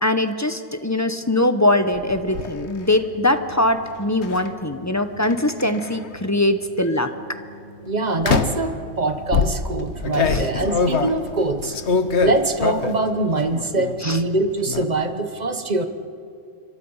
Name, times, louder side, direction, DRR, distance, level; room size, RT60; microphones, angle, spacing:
voice 1, 0.0-7.1 10.3-10.5 14.0-14.2, left 1 dB, 15° left, 9 dB, 0.8 m, -21 dB
sound 1, 1.8-15.3, right 2 dB, 50° right, 7.1 m, -44 dB
sound 2, 1.9-2.5 4.2-4.5 5.2-6.1 6.8-7.1 8.2-8.7 9.3-13.1 13.4-14.0 14.2-14.8, left 5 dB, 60° left, 1.3 m, -23 dB
voice 2, 7.9-11.8 12.2-15.9, right 2 dB, 35° right, 9 dB, 1.2 m, -23 dB
26.5 x 24.0 x 5.6 m, 2.4 s
omnidirectional pair, 1.3 m